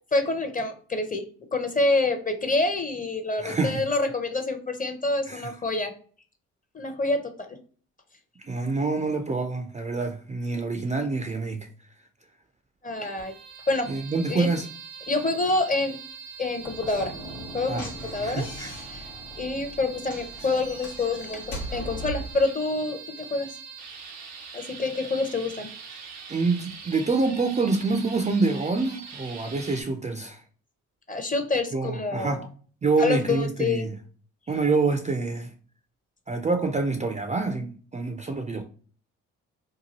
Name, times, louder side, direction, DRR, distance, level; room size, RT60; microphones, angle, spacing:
voice 1, 0.1-1.2 1.5-5.9 6.7-7.5 12.8-13.3 13.7-13.9 14.3-14.5 15.1-16.0 16.4-17.1 17.5-17.8 18.1-18.5 18.9-19.0 19.4-23.5 24.5-25.7 31.1-32.5 33.0-33.9, left 2 dB, 25° left, 0.7 m, -27 dB
voice 2, 3.4-3.8 5.3-5.5 8.4-11.7 13.9-14.7 17.7-17.8 18.2-18.7 26.3-30.4 31.7-32.4 32.8-33.9 34.5-35.5 36.3-38.6, right 3 dB, 20° right, 0.4 m, -26 dB
sound 1, 12.9-29.8, right 6 dB, 90° right, 0.6 m, -43 dB
Slam / Knock, 16.6-22.4, equal, 85° left, 1.2 m, -39 dB
2.9 x 2.2 x 2.8 m
supercardioid pair, 50°, 34 cm